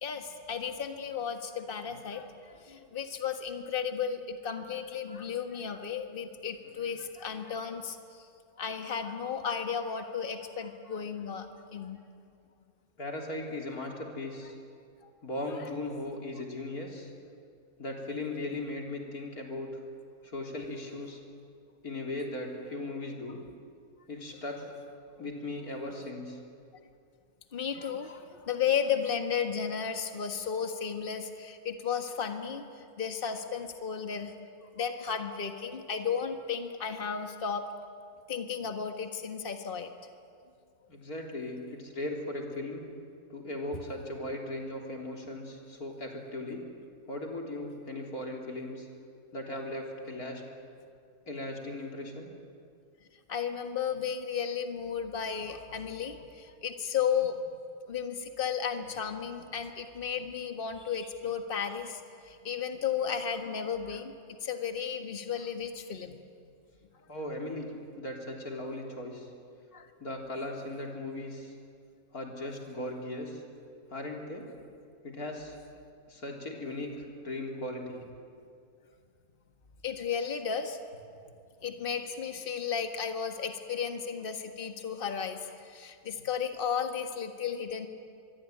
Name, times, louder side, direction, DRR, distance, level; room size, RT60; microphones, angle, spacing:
voice 1, 0.0-8.3 8.6-12.0 25.2-25.3 27.5-34.3 34.7-37.7 38.3-39.9 53.3-57.4 57.9-64.1 64.4-66.2 69.7-69.9 79.8-80.8 81.6-87.9, left 7 dB, 35° left, 6 dB, 1.7 m, -34 dB
voice 2, 13.0-14.5 15.2-17.1 17.8-19.7 20.2-21.2 21.8-23.4 24.1-24.7 25.2-26.4 40.9-42.8 43.3-46.6 47.1-48.9 49.3-50.4 51.3-52.3 67.1-67.7 68.0-69.3 70.0-71.5 72.1-73.4 73.9-74.5 75.0-75.6 76.1-78.0, left 2 dB, 65° left, 0 dB, 4.1 m, -38 dB
25.5 x 22.5 x 9.4 m, 2.3 s
omnidirectional pair, 1.7 m